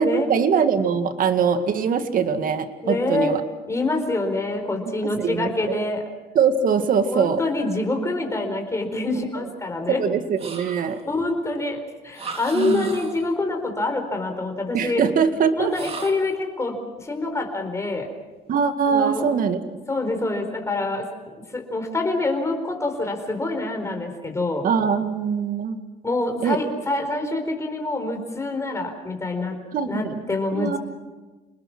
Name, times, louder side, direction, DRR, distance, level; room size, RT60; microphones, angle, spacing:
voice 1, 0.0-3.4 4.9-5.8 6.3-7.4 9.1-9.4 9.9-11.0 12.5-12.9 14.7-15.7 18.5-19.6 24.6-25.8 26.4-26.6 29.7-30.2 30.5-30.8, right 6 dB, 55° right, 8 dB, 2.0 m, -22 dB
voice 2, 2.8-3.3 3.7-6.0 7.1-10.0 11.1-15.0 15.6-18.1 18.9-19.2 19.9-21.1 21.5-24.7 26.0-29.6 29.8-30.8, left 2 dB, 15° left, 4 dB, 4.5 m, -26 dB
sound 1, 10.4-11.2 12.1-13.4 15.7-16.4, right 4 dB, 35° right, 2.5 m, -37 dB
28.5 x 20.0 x 6.1 m, 1.3 s
cardioid pair, 110°, 17 cm